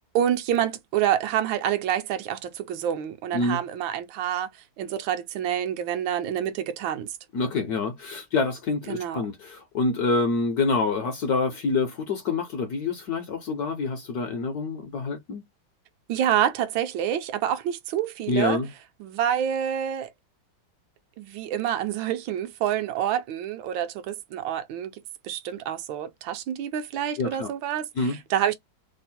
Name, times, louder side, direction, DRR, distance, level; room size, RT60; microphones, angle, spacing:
voice 1, 0.1-4.5 4.8-7.1 8.9-9.3 16.1-18.6 19.0-20.1 21.2-24.9 25.2-28.5, right 10 dB, 75° right, 1.3 m, -27 dB
voice 2, 7.3-15.4 18.3-18.7 27.2-27.5 28.0-28.2, left 3 dB, 70° left, 0.9 m, -26 dB
3.4 x 2.0 x 4.2 m
omnidirectional pair, 2.2 m